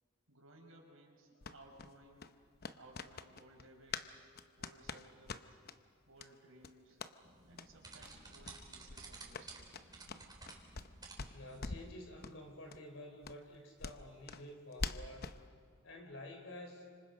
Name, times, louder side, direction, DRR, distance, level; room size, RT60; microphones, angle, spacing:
voice 1, 0.3-2.3 2.7-4.2 4.6-5.6 6.1-7.0 7.5-9.8, right 1 dB, 85° right, 1 dB, 5.5 m, -60 dB
sound 1, 1.4-4.1 4.4-5.8 6.2-6.3 6.6-7.1 7.5-7.7 8.0-8.1 8.4-8.6 8.9-10.9 11.2-11.9 12.2-12.4 12.7-12.8 13.2-15.4, left 4 dB, 50° left, 0.8 m, -45 dB
sound 2, 7.2-11.9, right 3 dB, 20° right, 3.9 m, -54 dB
voice 2, 11.3-15.3 15.8-16.9, left 1 dB, 70° left, 3 dB, 4.6 m, -50 dB
29.5 x 26.5 x 5.3 m, 2.2 s
head